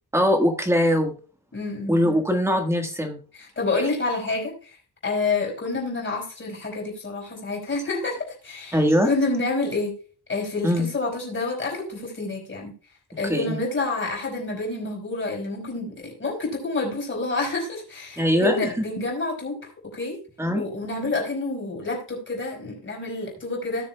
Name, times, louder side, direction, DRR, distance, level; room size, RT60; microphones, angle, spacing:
voice 1, 0.1-1.2 1.9-3.2 8.7-9.1 10.6-10.9 13.2-13.6 18.2-18.8 20.4-20.6, equal, 5° right, 4 dB, 1.5 m, -21 dB
voice 2, 1.5-2.0 3.3-4.8 5.0-9.9 10.3-12.7 13.2-19.6 19.8-20.2 20.6-23.9, left 3 dB, 30° left, 0 dB, 4.6 m, -28 dB
18.0 x 6.9 x 2.3 m, 0.38 s
wide cardioid pair, 180°, 38 cm